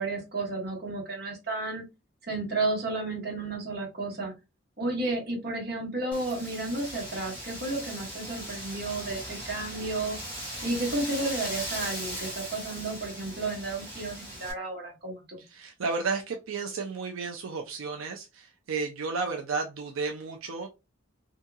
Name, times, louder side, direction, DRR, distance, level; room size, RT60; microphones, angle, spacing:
voice 1, 0.0-1.8 2.3-4.3 4.8-10.2 10.6-15.4, right 2 dB, 50° right, -1 dB, 1.1 m, -32 dB
Wind, 6.1-14.5, equal, 5° left, 1.2 m, -39 dB
voice 2, 15.5-20.7, right 4 dB, 85° right, 3 dB, 0.5 m, -32 dB
2.8 x 2.6 x 2.3 m, 0.25 s
head